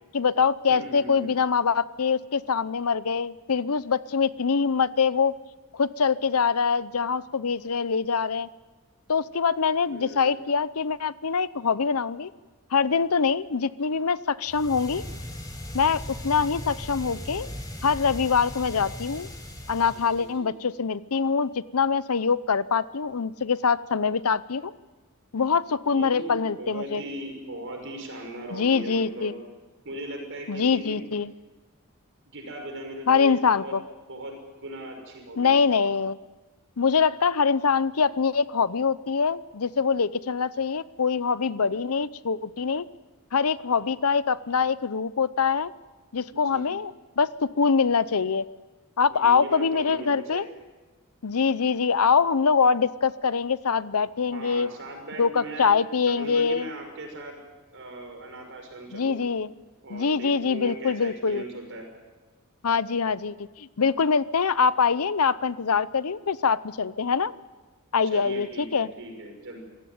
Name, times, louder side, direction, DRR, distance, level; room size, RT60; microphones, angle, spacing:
voice 1, 0.1-5.3 5.7-8.5 9.1-12.3 12.7-15.0 15.7-17.5 17.8-19.3 19.7-24.7 25.3-27.0 28.5-29.3 30.5-31.3 33.1-33.8 35.4-36.2 36.8-42.8 43.3-45.7 46.1-48.4 49.0-50.4 51.2-54.7 55.2-56.7 58.9-59.5 59.9-61.4 62.6-67.3 67.9-68.9, left 5 dB, 75° left, 17 dB, 0.7 m, -24 dB
voice 2, 0.7-1.3 9.9-10.5 19.9-20.5 25.9-29.4 29.8-31.0 32.3-33.8 34.1-35.6 46.3-46.8 49.1-50.5 54.3-55.7 56.0-57.4 57.7-59.2 59.8-61.9 68.0-69.6, right 1 dB, 60° right, 3 dB, 5.7 m, -39 dB
sound 1, 14.4-20.4, left 1 dB, 15° left, 4.9 m, -38 dB
26.0 x 16.0 x 9.4 m, 1.3 s
head